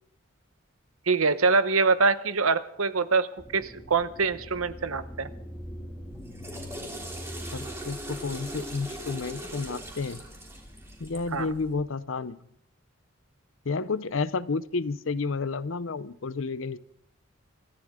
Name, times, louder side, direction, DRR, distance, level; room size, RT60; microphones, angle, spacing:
voice 1, 1.1-5.3 11.3-11.5, right 4 dB, 85° right, 12 dB, 0.9 m, -24 dB
sound 1, 3.4-11.8, equal, 15° left, 3.6 m, -44 dB
Water / Toilet flush, 6.1-11.4, right 1 dB, 10° right, 3.0 m, -40 dB
voice 2, 7.5-10.2 11.0-12.4 13.7-16.8, left 4 dB, 70° left, 16 dB, 0.7 m, -31 dB
25.5 x 14.0 x 3.7 m, 0.71 s
head